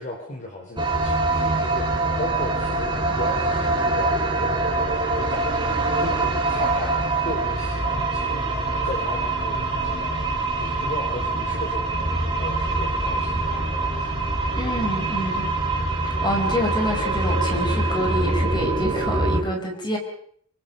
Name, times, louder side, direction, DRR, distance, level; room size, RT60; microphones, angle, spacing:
voice 1, 0.0-4.5 5.0-7.0 7.2-10.2 10.6-14.2, left 1 dB, 35° left, 0 dB, 4.1 m, -36 dB
sound 1, 0.8-19.4, right 2 dB, 25° right, 4.7 m, -24 dB
voice 2, 14.5-15.5 16.0-20.0, equal, 20° left, 2 dB, 4.7 m, -27 dB
26.5 x 25.0 x 5.4 m, 0.62 s
head